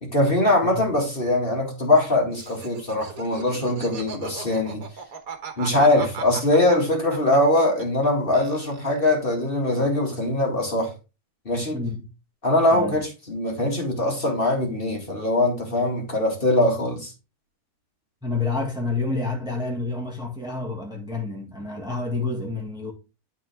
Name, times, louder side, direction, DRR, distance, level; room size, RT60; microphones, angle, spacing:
voice 1, 0.0-4.8 5.6-10.9 11.5-11.8 12.4-17.1, left 1 dB, 35° left, 2.4 m, -22 dB
Laughter, 2.3-8.1 8.3-9.1, right 5 dB, 65° right, 1.7 m, -38 dB
voice 2, 11.7-12.1 12.7-12.9 18.2-22.9, left 3 dB, 5° right, 1.8 m, -29 dB
12.0 x 4.2 x 3.5 m
omnidirectional pair, 1.6 m